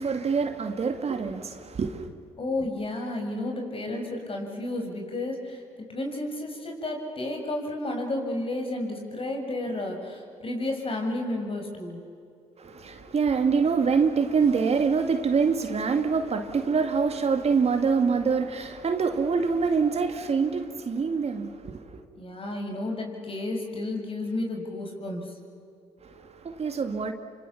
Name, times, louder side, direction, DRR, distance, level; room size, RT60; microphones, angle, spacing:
voice 1, 0.0-2.1 12.6-21.8 26.0-27.1, right 5 dB, 50° right, 2.3 m, -25 dB
voice 2, 2.4-5.6 5.9-12.0 22.2-25.4, left 2 dB, 45° left, 6.8 m, -32 dB
28.5 x 25.5 x 7.2 m
supercardioid pair, 55°, 13 cm